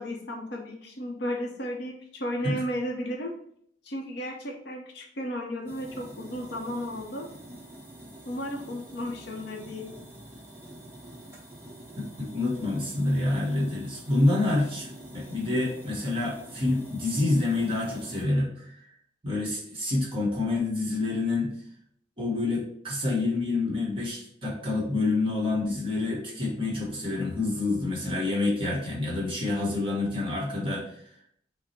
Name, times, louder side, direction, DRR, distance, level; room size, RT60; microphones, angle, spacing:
voice 1, 0.0-3.3 3.8-7.3 8.3-9.9, equal, 65° left, 1 dB, 0.8 m, -34 dB
sound 1, 5.7-18.2, right 1 dB, 15° right, 0.9 m, -46 dB
voice 2, 12.0-14.9 15.1-18.9 19.2-21.5 22.2-31.1, left 2 dB, 30° right, -4 dB, 1.3 m, -27 dB
5.8 x 2.1 x 4.4 m, 0.66 s
head